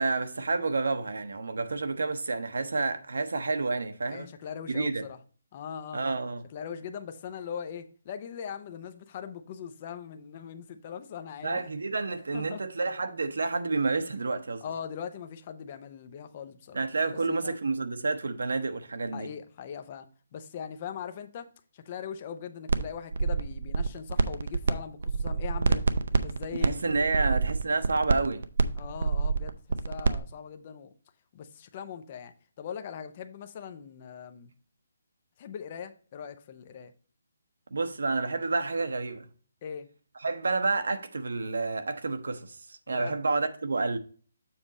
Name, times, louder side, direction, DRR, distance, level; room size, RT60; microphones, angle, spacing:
voice 1, 0.0-4.3 4.7-5.0 5.9-6.4 11.4-14.6 16.7-19.3 26.5-28.4 37.7-39.3 40.2-44.0, right 3 dB, 80° right, 1.0 m, -29 dB
voice 2, 4.1-5.2 5.5-6.0 6.5-11.6 12.3-12.6 14.6-16.8 17.1-17.6 19.1-20.1 20.3-25.8 26.1-27.4 28.8-30.9 31.3-32.3 32.6-34.5 35.4-36.9 39.6-39.9 42.9-43.2, left 7 dB, 25° left, 0.5 m, -40 dB
sound 1, 22.7-22.8 23.1-24.7 25.0-30.2, right 4 dB, 60° right, 0.5 m, -26 dB
7.1 x 5.0 x 4.1 m
hypercardioid pair, 180°, 0 cm